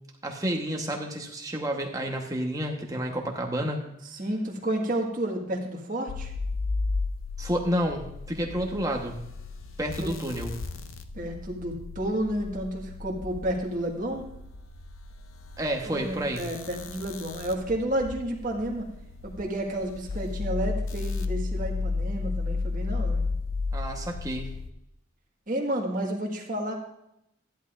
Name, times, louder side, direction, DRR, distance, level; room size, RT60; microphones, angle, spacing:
voice 1, 0.2-3.8 7.4-9.2 9.8-10.6 15.6-16.5 23.7-24.5, equal, 15° right, 1 dB, 1.1 m, -30 dB
voice 2, 4.1-6.3 10.0-10.1 11.1-14.2 15.8-18.9 19.2-23.2 25.5-26.7, right 1 dB, 40° right, 0 dB, 1.6 m, -31 dB
sound 1, 6.1-24.7, left 3 dB, 75° left, 0.7 m, -34 dB
13.5 x 10.5 x 2.5 m, 0.82 s
head